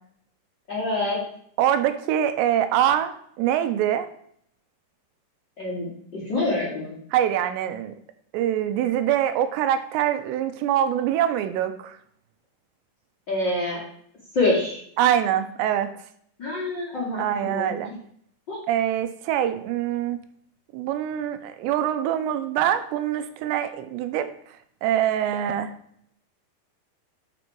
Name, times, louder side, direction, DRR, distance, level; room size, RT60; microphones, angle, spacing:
voice 1, 0.7-1.2 5.6-7.0 13.3-13.8 14.3-14.8 16.4-18.0 18.5-18.6, left 2 dB, 35° left, -6 dB, 2.1 m, -26 dB
voice 2, 1.6-4.1 7.1-7.9 8.3-12.0 15.0-15.9 17.2-17.9 18.7-20.2 20.7-24.3 24.8-25.7, right 10 dB, 85° right, 9 dB, 2.9 m, -24 dB
11.0 x 4.4 x 4.6 m, 0.66 s
omnidirectional pair, 4.9 m